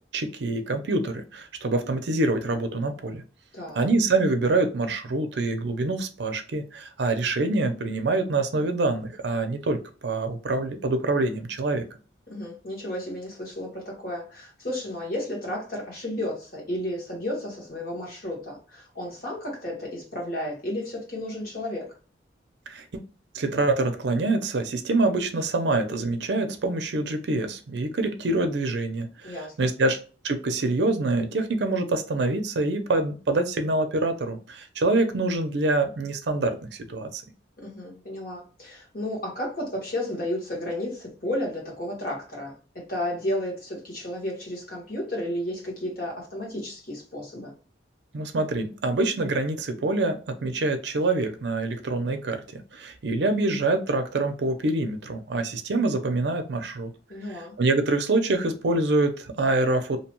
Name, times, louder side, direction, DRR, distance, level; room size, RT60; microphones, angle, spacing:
voice 1, 0.1-3.2 3.8-11.8 22.7-22.8 23.3-30.0 30.2-37.2 48.1-56.9 57.3-60.0, right 2 dB, 70° right, 7 dB, 0.5 m, -25 dB
voice 2, 3.5-3.9 12.3-21.9 29.2-29.5 37.6-47.5 57.1-57.5, left 1 dB, 50° left, -2 dB, 1.3 m, -32 dB
2.7 x 2.2 x 2.9 m, 0.37 s
head